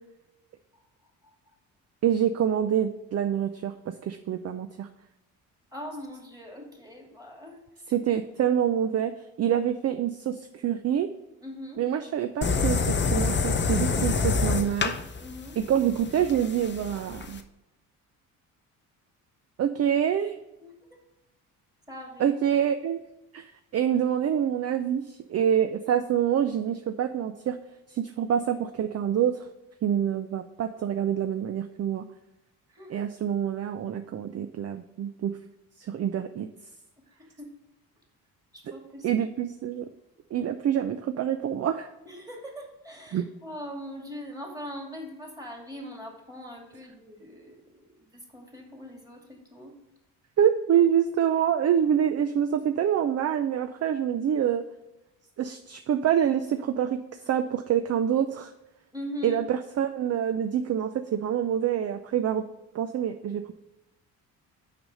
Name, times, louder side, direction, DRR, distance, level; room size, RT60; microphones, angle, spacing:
voice 1, 2.0-4.9 7.9-11.1 11.8-15.0 15.6-17.4 19.6-20.4 22.2-23.0 23.3-27.6 27.9-29.5 29.8-32.0 32.9-35.4 35.8-36.5 38.7-38.8 39.0-39.9 40.3-41.9 43.1-43.2 50.4-54.6 55.4-58.5 59.2-62.4 62.7-63.5, right 9 dB, 40° right, 9 dB, 0.5 m, -26 dB
voice 2, 5.7-7.6 11.4-11.8 15.2-15.6 20.6-20.7 21.9-22.3 32.7-33.0 37.1-37.6 38.5-39.1 42.1-49.8 58.9-59.5, equal, 10° right, 1 dB, 2.4 m, -41 dB
sound 1, 12.4-17.4, left 4 dB, 25° left, 0.7 m, -27 dB
5.9 x 5.0 x 5.3 m, 0.99 s
supercardioid pair, 60°, 41 cm